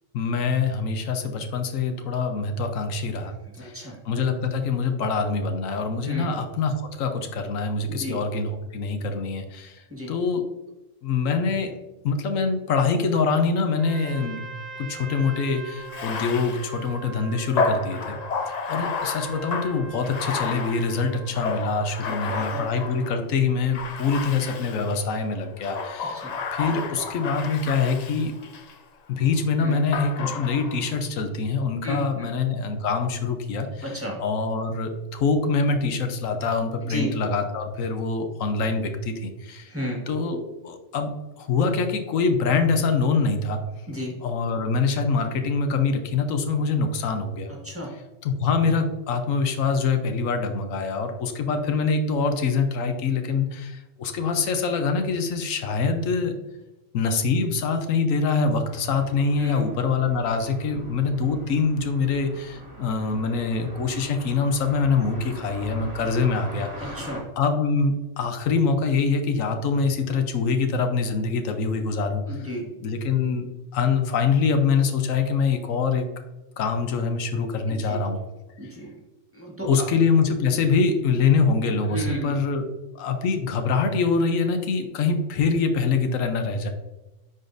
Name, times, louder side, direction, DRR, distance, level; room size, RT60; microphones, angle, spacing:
voice 1, 0.1-3.3 3.6-3.8 4.1-10.4 11.0-11.7 12.0-14.4 14.8-18.2 18.5-28.3 29.1-33.8 34.2-39.7 40.1-43.7 44.2-47.5 48.2-56.3 56.9-67.0 67.4-72.4 72.8-76.0 76.6-78.2 79.7-82.7 82.9-86.7, left 4 dB, 85° left, 6 dB, 1.1 m, -24 dB
voice 2, 3.5-4.0 6.1-6.3 7.9-8.2 9.9-10.1 22.0-22.6 26.1-26.3 29.6-29.9 31.8-32.3 33.8-34.2 36.8-37.1 39.7-40.0 43.9-44.2 47.5-47.9 59.4-59.6 66.8-67.2 72.3-72.7 77.7-78.1 78.6-78.9 79.3-79.7 81.9-82.4, equal, 10° right, -3 dB, 1.6 m, -33 dB
Trumpet, 13.7-21.4, right 4 dB, 85° right, 1.3 m, -41 dB
Bathtub (filling or washing), 15.8-23.2 23.7-25.0 25.6-28.8 29.9-30.9, left 4 dB, 50° left, 0.5 m, -31 dB
sound 1, 58.7-67.2, right 1 dB, 30° right, 1.5 m, -42 dB
10.0 x 4.0 x 2.6 m, 1.0 s
omnidirectional pair, 1.3 m